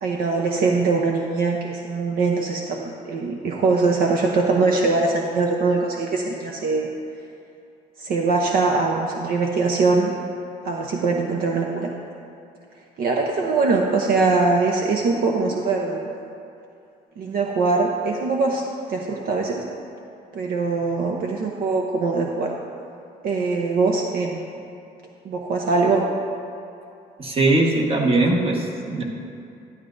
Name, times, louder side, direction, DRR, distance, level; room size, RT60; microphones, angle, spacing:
voice 1, 0.0-6.9 8.0-10.1 10.6-11.9 13.0-16.1 17.2-18.6 18.9-19.6 20.3-22.5 23.2-24.4 25.2-26.0, right 3 dB, 60° right, 0 dB, 0.8 m, -22 dB
voice 2, 27.2-29.0, right 2 dB, 35° right, 1 dB, 1.3 m, -20 dB
11.5 x 11.0 x 2.6 m, 2.6 s
cardioid pair, 110°, 17 cm